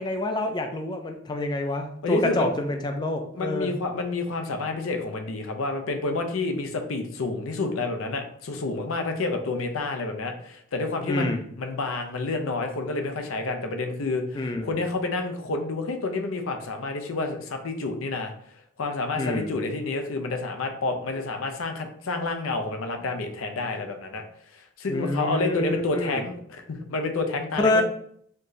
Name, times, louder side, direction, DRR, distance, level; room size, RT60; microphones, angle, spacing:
voice 1, 0.0-3.7 11.1-11.4 14.4-14.7 19.2-19.5 24.9-26.2 27.6-27.8, left 2 dB, 20° left, 5 dB, 0.3 m, -27 dB
voice 2, 2.0-2.5 3.3-18.3 18.8-24.2 24.5-27.8, left 3 dB, 85° left, 5 dB, 0.6 m, -29 dB
4.3 x 2.7 x 3.1 m, 0.65 s
head